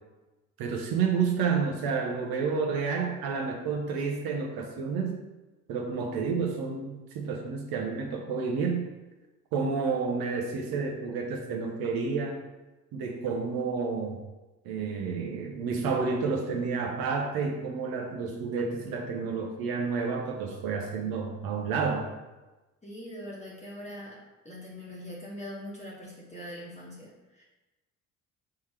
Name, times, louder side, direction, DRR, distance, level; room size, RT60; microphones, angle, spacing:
voice 1, 0.6-5.2 5.7-8.9 9.5-12.4 12.9-14.2 14.6-22.1, right 5 dB, 70° right, 2 dB, 0.8 m, -30 dB
voice 2, 22.8-24.2 24.4-27.4, equal, 20° left, -5 dB, 1.1 m, -42 dB
4.3 x 3.8 x 3.2 m, 1.1 s
hypercardioid pair, 50°, 38 cm